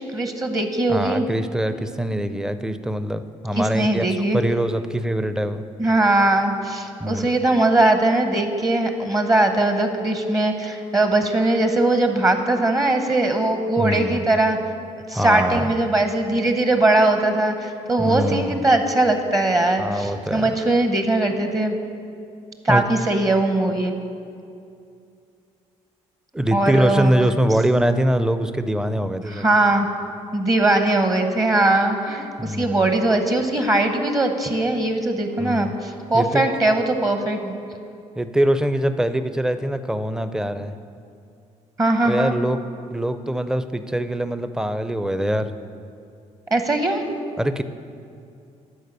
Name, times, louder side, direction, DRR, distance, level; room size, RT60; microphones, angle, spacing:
voice 1, 0.1-1.3 3.5-4.4 5.8-14.6 15.1-21.7 22.6-23.9 26.5-27.1 29.3-29.9 30.3-37.6 41.8-42.4 46.5-47.0, right 2 dB, 25° right, 6 dB, 0.8 m, -20 dB
voice 2, 0.9-4.1 4.3-5.6 7.0-7.3 13.8-14.2 15.1-15.7 18.0-18.7 19.8-20.5 22.7-22.9 26.3-29.5 32.4-32.9 35.4-35.7 36.1-36.5 38.2-40.7 42.0-42.6 42.9-45.5 47.4-47.6, right 1 dB, 5° right, 11 dB, 0.5 m, -23 dB
11.0 x 4.7 x 6.7 m, 2.5 s
cardioid pair, 80°, 13 cm